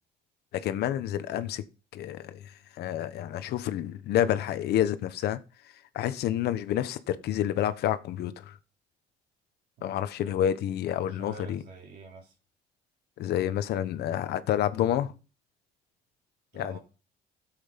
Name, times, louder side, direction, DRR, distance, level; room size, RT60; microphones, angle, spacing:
voice 1, 0.5-1.6 1.9-2.4 2.8-5.4 5.9-8.6 9.8-11.6 13.2-15.1 16.5-16.8, left 11 dB, 75° left, 1.2 m, -29 dB
voice 2, 11.1-12.4 16.5-16.8, right 4 dB, 70° right, 4.2 m, -47 dB
13.0 x 7.9 x 5.2 m
cardioid pair, 110°, 17 cm